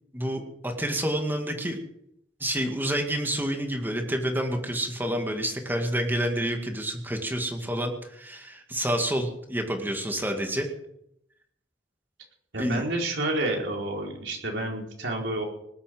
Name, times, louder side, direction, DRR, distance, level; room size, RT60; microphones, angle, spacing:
voice 1, 0.1-1.8 2.4-10.7 12.6-12.9, right 1 dB, 10° right, 3 dB, 2.1 m, -28 dB
voice 2, 12.5-15.4, right 1 dB, 75° right, 0 dB, 4.5 m, -29 dB
19.5 x 8.8 x 7.8 m, 0.76 s
head